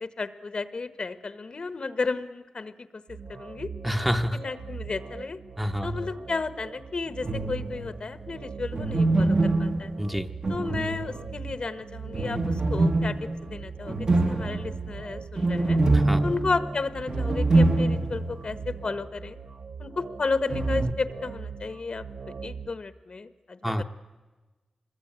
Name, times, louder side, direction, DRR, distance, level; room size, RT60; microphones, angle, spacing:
voice 1, 0.0-3.7 4.4-5.4 5.8-9.9 10.5-13.2 13.5-15.8 16.2-19.4 19.8-22.1 22.4-23.8, left 4 dB, 50° left, 12 dB, 1.2 m, -33 dB
sound 1, 3.1-22.7, right 5 dB, 70° right, 1.1 m, -41 dB
voice 2, 3.8-4.4 5.6-6.1 10.0-10.3 15.9-16.3 23.6-23.8, equal, 5° right, 5 dB, 1.0 m, -28 dB
sound 2, 7.2-8.0 8.7-11.5 12.1-18.4 18.6-18.7 20.5-20.9, right 2 dB, 40° right, 1.2 m, -25 dB
25.0 x 21.0 x 8.8 m, 1.2 s
wide cardioid pair, 125°, 2 cm